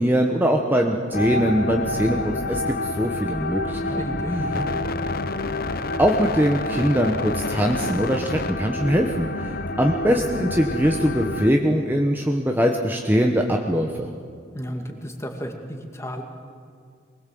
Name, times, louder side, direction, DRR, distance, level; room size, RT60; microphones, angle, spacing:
voice 1, 0.0-4.0 6.0-9.5 9.8-14.1, equal, 10° right, 2 dB, 1.1 m, -22 dB
sound 1, 1.1-11.5, left 2 dB, 50° left, 0.8 m, -28 dB
voice 2, 3.7-4.8 14.5-16.2, equal, 15° left, 4 dB, 2.2 m, -32 dB
23.0 x 20.5 x 7.7 m, 2.2 s
head